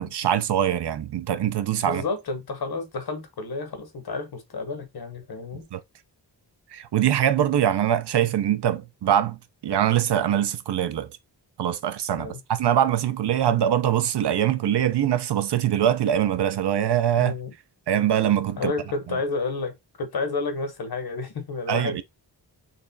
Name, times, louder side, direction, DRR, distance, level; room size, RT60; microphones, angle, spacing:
voice 1, 0.0-2.0 5.7-5.8 6.7-11.1 11.6-17.3 17.9-18.7 21.7-22.0, right 10 dB, 70° right, 0.6 m, -23 dB
voice 2, 1.8-5.7 12.2-12.4 13.4-13.6 17.2-17.5 18.6-22.0, left 3 dB, 60° left, 0.9 m, -31 dB
4.0 x 3.0 x 2.6 m
wide cardioid pair, 140°, 43 cm